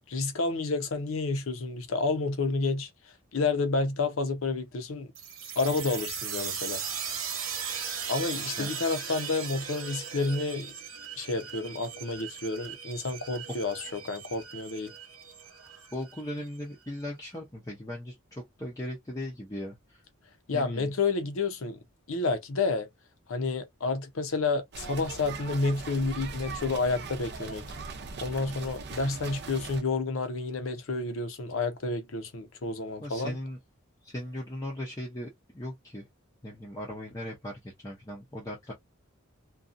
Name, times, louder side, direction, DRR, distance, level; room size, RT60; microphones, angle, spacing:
voice 1, 0.1-2.9 3.3-5.1 5.6-6.8 8.1-10.7 11.2-14.9 20.5-21.8 22.1-22.9 23.3-27.7 28.2-33.4, left 3 dB, 70° left, 0.6 m, -30 dB
sound 1, 5.1-16.6, right 7 dB, 80° right, 1.0 m, -38 dB
voice 2, 15.9-20.0 20.5-20.9 33.0-33.6 34.0-36.0 36.4-38.7, left 1 dB, 15° left, 0.5 m, -38 dB
sound 2, 24.7-29.8, right 4 dB, 50° right, 0.6 m, -40 dB
2.7 x 2.3 x 2.5 m
head